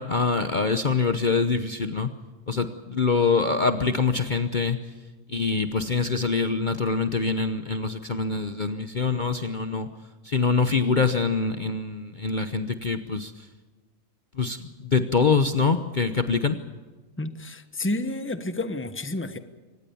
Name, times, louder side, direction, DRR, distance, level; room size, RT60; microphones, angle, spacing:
voice 1, 0.0-2.1 2.5-4.8 5.3-9.9 10.2-13.3 14.4-16.6, left 4 dB, 40° left, 9 dB, 1.0 m, -24 dB
voice 2, 17.2-19.4, left 2 dB, 10° left, 11 dB, 1.1 m, -30 dB
25.0 x 19.5 x 7.1 m, 1.3 s
omnidirectional pair, 1.4 m